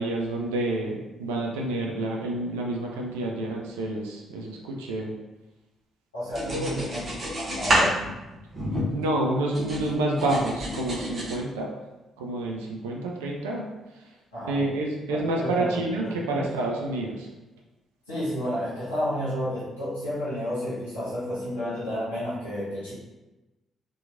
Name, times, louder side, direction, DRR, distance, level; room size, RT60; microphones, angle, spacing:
voice 1, 0.0-5.1 6.5-6.9 8.9-11.7 12.2-14.0 14.4-17.3, right 2 dB, 80° right, -1 dB, 0.3 m, -29 dB
voice 2, 6.1-7.0 7.4-8.0 14.3-14.6 15.1-16.5 18.1-22.9, equal, 85° left, -12 dB, 0.9 m, -31 dB
sound 1, 6.3-9.2 9.5-11.4, equal, 40° right, 0.8 m, -28 dB
2.9 x 2.2 x 2.4 m, 1.1 s
figure-of-eight pair, 45°, 0 cm